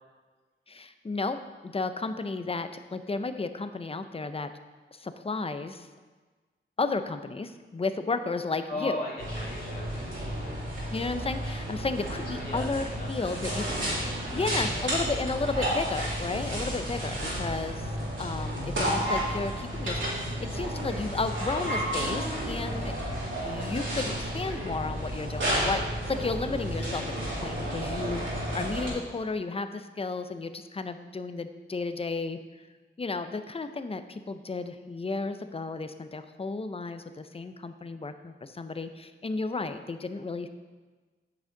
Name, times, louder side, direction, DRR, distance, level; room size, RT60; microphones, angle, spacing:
voice 1, 0.7-4.5 4.9-5.9 6.8-9.0 10.9-13.6 14.3-17.9 18.2-22.9 23.4-25.8 26.1-27.0 27.4-32.4 33.0-40.5, left 3 dB, 25° left, 10 dB, 0.5 m, -33 dB
voice 2, 8.7-10.6 12.3-15.0, left 1 dB, 45° left, -5 dB, 2.5 m, -39 dB
sound 1, 9.2-28.9, equal, 65° right, 2.6 m, -32 dB
8.7 x 6.4 x 3.8 m, 1.3 s
cardioid pair, 65°, 21 cm